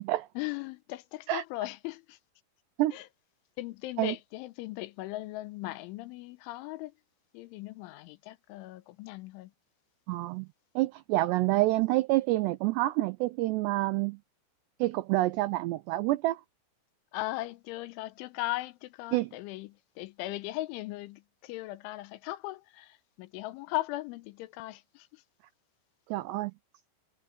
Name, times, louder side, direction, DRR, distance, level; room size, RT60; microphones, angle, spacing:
voice 1, 0.4-2.2 2.9-3.1 3.6-6.9 7.3-9.5 17.1-25.2, left 18 dB, 85° left, 3.1 m, -38 dB
voice 2, 10.1-10.5 10.8-14.2 14.8-16.4 19.1-19.3 26.1-26.5, right 18 dB, 90° right, 2.4 m, -27 dB
omnidirectional pair, 5.7 m